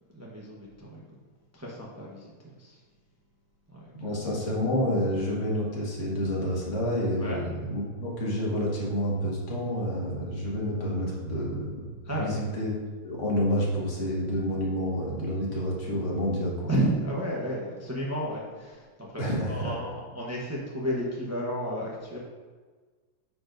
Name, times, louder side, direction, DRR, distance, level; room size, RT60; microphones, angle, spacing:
voice 1, 0.1-1.2 1.5-2.8 3.7-3.8 7.2-7.4 12.0-12.4 16.7-22.2, equal, 20° right, -4 dB, 0.4 m, -32 dB
voice 2, 4.0-11.8 12.1-12.8 13.0-16.7 19.2-19.7, equal, 40° left, -3 dB, 1.6 m, -29 dB
9.2 x 4.7 x 2.6 m, 1.4 s
omnidirectional pair, 2.1 m